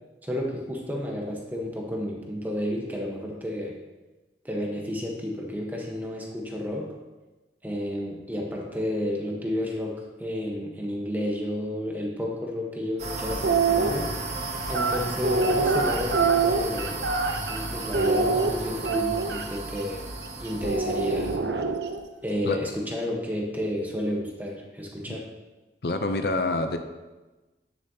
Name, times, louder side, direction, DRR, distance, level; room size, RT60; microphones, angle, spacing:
voice 1, 0.2-3.8 4.4-6.9 7.6-14.1 14.7-16.9 17.5-20.0 20.4-21.3 22.2-25.2, left 1 dB, 10° right, -1 dB, 1.1 m, -31 dB
sound 1, 13.0-21.4, right 2 dB, 40° right, 1.0 m, -34 dB
sound 2, 13.3-13.9 14.7-17.6 17.9-19.4 20.6-22.0, right 4 dB, 75° right, 0.7 m, -24 dB
voice 2, 25.8-26.8, left 2 dB, 60° left, 7 dB, 0.6 m, -26 dB
9.8 x 7.2 x 2.8 m, 1.2 s
head